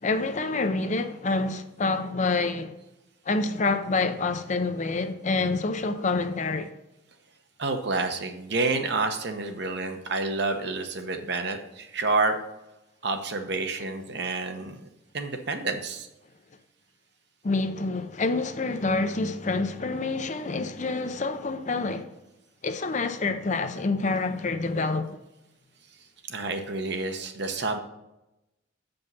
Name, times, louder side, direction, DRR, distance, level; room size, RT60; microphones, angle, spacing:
voice 1, 0.0-2.8 3.3-6.7 17.4-22.1 22.6-25.2, left 3 dB, 35° left, 0.5 m, -27 dB
voice 2, 7.6-12.4 13.0-14.8 15.1-16.1 26.3-27.8, right 3 dB, 55° right, 0.9 m, -29 dB
7.9 x 5.3 x 5.5 m
head